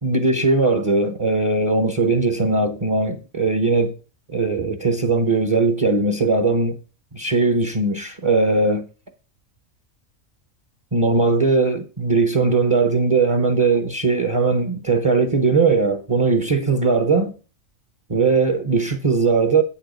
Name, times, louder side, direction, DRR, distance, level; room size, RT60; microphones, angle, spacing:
voice 1, 0.0-3.9 4.3-6.8 7.1-8.9 10.9-17.3 18.1-19.6, right 3 dB, 25° right, 0.8 m, -19 dB
8.6 x 7.3 x 5.2 m
omnidirectional pair, 1.4 m